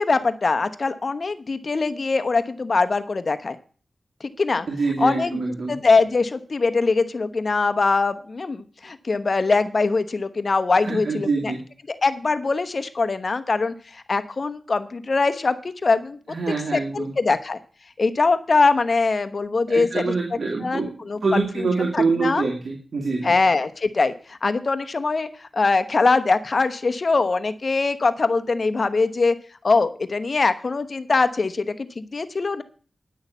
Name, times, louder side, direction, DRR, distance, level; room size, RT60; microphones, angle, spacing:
voice 1, 0.0-3.6 4.2-4.7 5.0-5.4 5.7-11.5 12.0-16.2 16.7-17.6 18.0-20.1 20.6-21.2 21.8-22.5 23.2-29.3 29.6-32.6, left 3 dB, 60° left, 11 dB, 1.0 m, -22 dB
voice 2, 4.7-5.8 10.8-11.6 16.3-17.1 19.7-20.9 21.2-23.3, right 4 dB, 80° right, 0 dB, 2.2 m, -25 dB
10.5 x 6.4 x 8.3 m, 0.41 s
cardioid pair, 50°, 0 cm